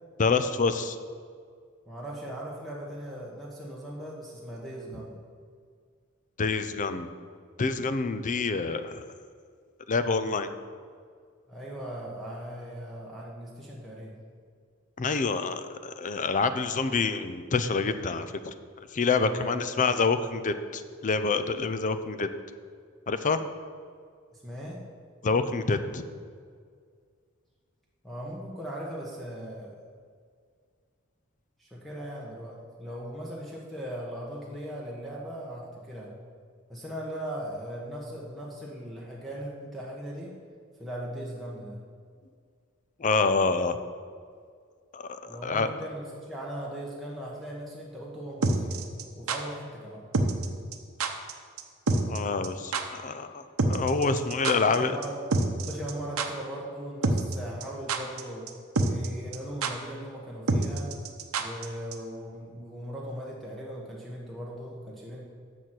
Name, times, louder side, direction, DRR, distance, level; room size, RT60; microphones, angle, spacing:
voice 1, 0.2-1.0 6.4-7.1 7.6-9.0 9.9-10.5 15.0-18.5 18.9-22.3 23.1-23.4 25.2-26.0 43.0-43.8 44.9-45.7 52.1-55.0, left 4 dB, 35° left, 11 dB, 0.5 m, -27 dB
voice 2, 1.9-5.1 11.5-14.1 19.2-19.5 24.3-24.8 28.0-29.8 31.6-36.1 36.7-40.3 40.8-41.8 45.3-48.9 49.1-50.0 54.4-55.2 55.5-58.5 58.8-61.0 61.4-65.2, equal, ahead, -4 dB, 1.1 m, -39 dB
sound 1, 48.4-49.4 50.1-50.5 50.7-50.8 51.0-51.3 51.6-51.7 51.9-52.2 52.4-52.5 52.7-52.8 53.6-54.8 55.0-55.1 55.3-55.9 56.2-56.3 57.0-57.4 57.6-58.2 58.5-58.6 58.8-59.1 59.3-59.4 59.6-59.7 60.5-61.7 61.9-62.0, right 3 dB, 90° right, 0.8 m, -26 dB
6.9 x 6.2 x 7.6 m, 2.1 s
head